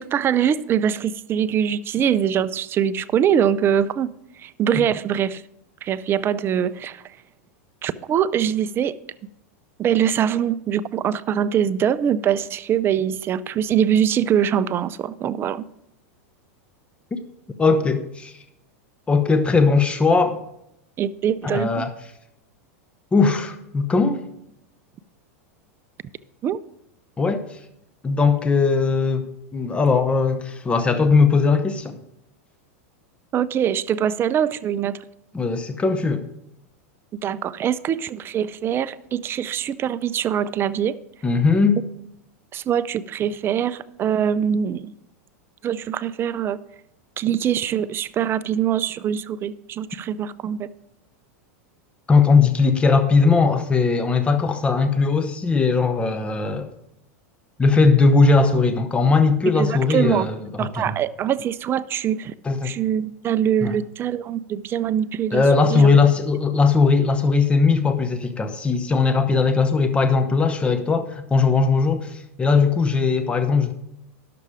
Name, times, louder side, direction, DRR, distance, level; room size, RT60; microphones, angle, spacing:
voice 1, 0.0-5.4 5.8-7.0 7.8-9.0 9.8-15.6 21.0-21.8 26.4-26.6 33.3-35.0 37.2-41.0 42.5-44.9 45.6-46.6 47.2-50.7 59.5-60.3 60.6-62.3 62.6-65.4 65.7-65.9, right 9 dB, 30° right, 0.5 m, -23 dB
voice 2, 17.6-18.3 19.1-20.4 21.4-21.9 23.1-24.2 27.2-27.4 28.0-32.0 35.3-36.2 41.2-41.8 52.1-56.7 57.6-60.9 62.4-62.8 63.6-63.8 65.3-73.7, left 4 dB, 15° left, 0.8 m, -19 dB
11.5 x 6.8 x 4.9 m
hypercardioid pair, 115°, 8 cm